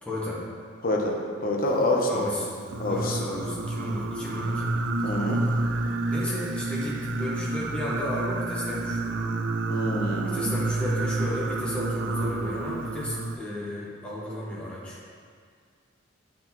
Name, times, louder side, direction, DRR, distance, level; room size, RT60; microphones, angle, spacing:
voice 1, 0.0-0.4 2.1-2.5 2.9-4.7 5.4-5.5 6.1-9.2 10.2-15.0, left 1 dB, 5° left, -7 dB, 1.4 m, -33 dB
voice 2, 0.8-2.2 2.8-3.2 5.0-5.4 9.7-10.4, left 1 dB, 50° left, 0 dB, 0.9 m, -26 dB
Singing, 2.6-13.4, right 2 dB, 70° right, 0.4 m, -29 dB
8.3 x 4.1 x 4.4 m, 2.1 s
head